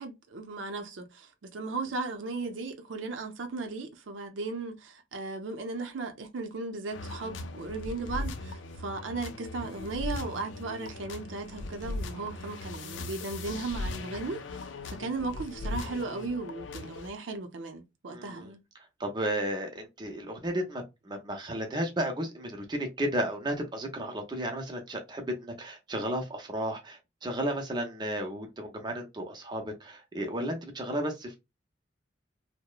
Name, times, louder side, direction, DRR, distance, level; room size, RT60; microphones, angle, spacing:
voice 1, 0.0-14.4 14.9-18.6, right 3 dB, 85° right, 0.5 m, -36 dB
sound 1, 6.9-17.1, left 2 dB, 80° left, 0.5 m, -39 dB
voice 2, 18.1-18.5 19.0-31.4, right 1 dB, 25° right, 0.6 m, -33 dB
2.8 x 2.1 x 2.2 m
head